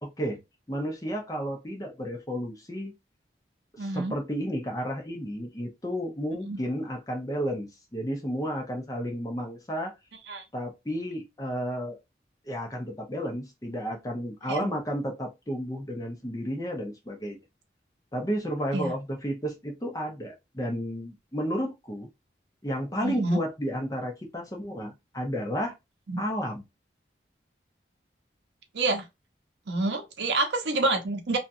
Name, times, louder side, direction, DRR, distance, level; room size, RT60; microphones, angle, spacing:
voice 1, 0.0-0.4 0.7-2.9 3.7-9.9 10.5-12.0 12.5-17.4 18.1-22.1 22.6-25.7 26.2-26.6, equal, 20° left, 0.7 m, -32 dB
voice 2, 3.8-4.1 6.5-6.6 10.3-10.4 14.5-14.7 18.7-18.9 23.0-23.4 26.1-26.2 28.7-29.1 29.7-31.4, right 2 dB, 85° right, 0.7 m, -27 dB
2.8 x 2.3 x 2.6 m
head